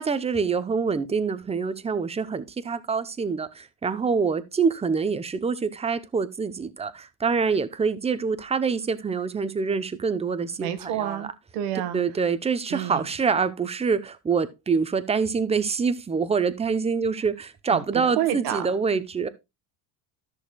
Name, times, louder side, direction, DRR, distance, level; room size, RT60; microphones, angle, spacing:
voice 1, 0.0-11.3 11.9-19.3, right 5 dB, 15° right, 0.7 m, -26 dB
voice 2, 10.6-12.0 12.7-13.1 17.7-18.7, right 11 dB, 80° right, 1.6 m, -29 dB
13.5 x 6.5 x 2.3 m
supercardioid pair, 110°, 49 cm